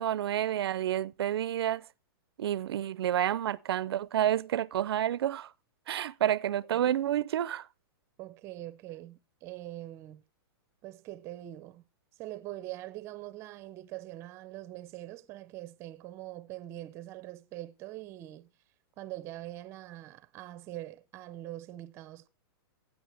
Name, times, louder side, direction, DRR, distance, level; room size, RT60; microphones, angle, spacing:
voice 1, 0.0-1.9 2.4-5.5 5.9-7.7, right 11 dB, 80° right, 0.5 m, -29 dB
voice 2, 8.2-10.2 10.8-11.8 12.2-18.5 19.0-22.3, right 15 dB, 20° right, 0.6 m, -43 dB
15.5 x 9.0 x 3.4 m
supercardioid pair, 165°, 13 cm